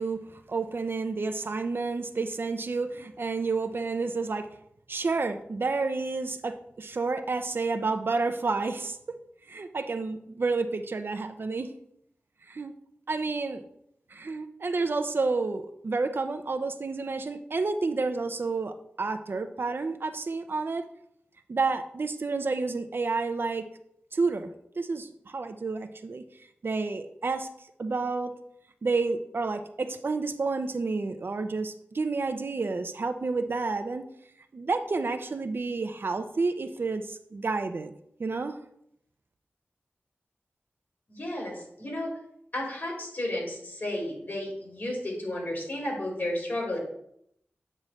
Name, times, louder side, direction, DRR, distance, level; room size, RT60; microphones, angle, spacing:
voice 1, 0.0-4.5 4.9-9.2 9.5-11.7 12.5-12.7 13.1-13.6 14.1-20.9 21.5-23.7 24.1-26.2 26.6-27.5 27.8-28.3 28.8-34.1 34.5-37.9 38.2-38.6, right 3 dB, 60° right, 8 dB, 0.6 m, -30 dB
voice 2, 41.1-42.1 42.5-46.8, left 1 dB, 50° left, -2 dB, 3.2 m, -33 dB
8.7 x 3.2 x 6.3 m, 0.72 s
wide cardioid pair, 70°, 4 cm